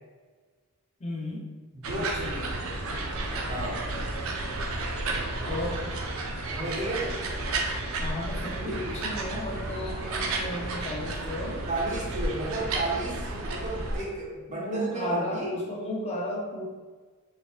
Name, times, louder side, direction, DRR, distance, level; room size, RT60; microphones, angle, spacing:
voice 1, 1.0-1.5 1.9-2.7 5.4-5.8 8.0-11.6 14.5-16.7, left 1 dB, 30° left, -2 dB, 0.6 m, -34 dB
voice 2, 1.7-2.3 3.5-3.9 6.4-7.2 8.6-8.8 11.7-15.5, right 2 dB, 35° right, -5 dB, 1.0 m, -33 dB
sound 1, 1.8-14.0, right 2 dB, 70° right, 0.6 m, -32 dB
4.0 x 3.7 x 2.3 m, 1.4 s
head